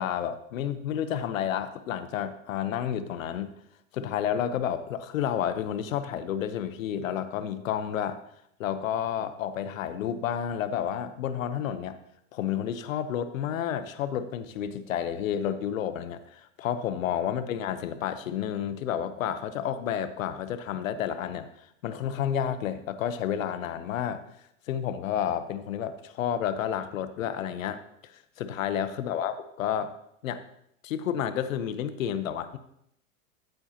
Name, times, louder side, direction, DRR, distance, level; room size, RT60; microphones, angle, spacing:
voice 1, 0.0-3.5 3.9-8.2 8.6-12.0 12.3-24.2 24.7-29.9 30.2-30.4 30.8-32.6, left 9 dB, 80° left, 11 dB, 1.0 m, -30 dB
14.0 x 8.1 x 2.9 m, 0.74 s
hypercardioid pair, 120°, 40 cm